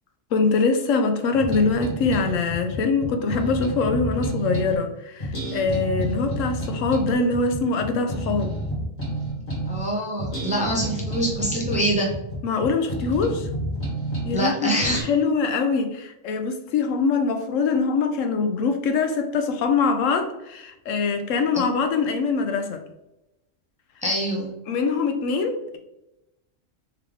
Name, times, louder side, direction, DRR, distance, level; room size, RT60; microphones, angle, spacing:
voice 1, 0.3-8.5 12.4-13.5 14.2-22.8 24.7-25.8, left 4 dB, 80° left, 6 dB, 1.0 m, -23 dB
sound 1, 1.3-4.8 5.2-9.9 10.2-14.4 14.8-15.0, right 1 dB, 30° left, 1.7 m, -29 dB
voice 2, 9.7-12.1 14.3-15.0 24.0-24.5, right 1 dB, 5° right, -3 dB, 0.7 m, -25 dB
3.6 x 3.2 x 3.4 m, 0.92 s
omnidirectional pair, 1.3 m